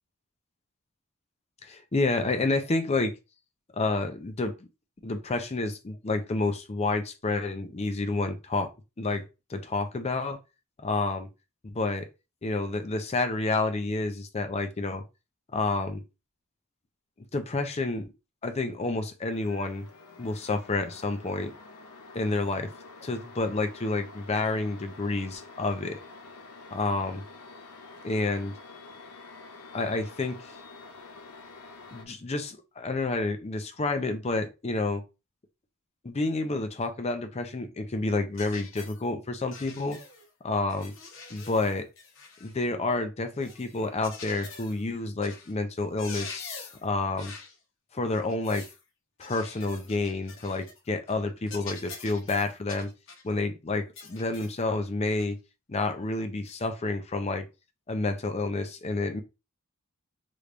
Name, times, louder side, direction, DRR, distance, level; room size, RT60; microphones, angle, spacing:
voice 1, 1.6-3.1 3.7-4.5 5.0-8.7 9.0-9.2 9.5-10.4 10.8-11.3 11.6-12.1 12.4-15.0 15.5-16.0 17.2-18.1 18.4-19.9 20.2-21.5 22.1-22.7 23.0-26.0 26.7-27.2 28.0-28.6 29.7-30.4 31.9-35.0 36.0-40.0 40.4-40.9 41.3-41.8 42.4-47.3 47.9-48.7 49.2-52.9 53.2-55.4 55.7-57.5 57.9-59.2, left 3 dB, 30° left, 0.5 m, -29 dB
sound 1, 19.3-32.1, left 3 dB, 80° left, 0.6 m, -48 dB
sound 2, 38.4-39.0 39.5-40.3 40.7-42.6 43.4-44.8 45.2-45.5 45.8-46.9 47.2-47.6 48.1-48.8 49.2-50.8 51.1-51.2 51.5-53.3 54.0-54.6 55.2-55.3 56.4-56.6, left 4 dB, 60° left, 0.9 m, -45 dB
3.3 x 3.1 x 2.5 m
head